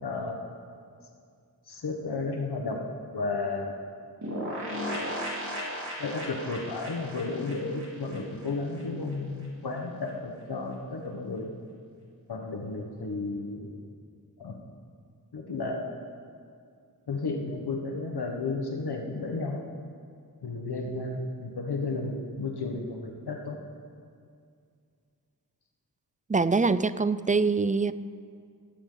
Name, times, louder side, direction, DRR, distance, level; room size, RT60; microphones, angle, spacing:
voice 1, 0.0-0.4 1.7-2.9 3.1-3.7 6.0-11.5 12.3-13.8 14.4-14.6 15.3-15.9 17.1-19.7 20.4-23.6, left 3 dB, 85° left, 2 dB, 1.4 m, -33 dB
sound 1, 4.2-8.8 9.1-9.2 9.4-9.5, equal, 50° right, 4.3 m, -36 dB
voice 2, 26.3-27.9, right 4 dB, 20° right, 15 dB, 0.4 m, -24 dB
18.0 x 16.0 x 4.0 m, 2.3 s
wide cardioid pair, 75°, 38 cm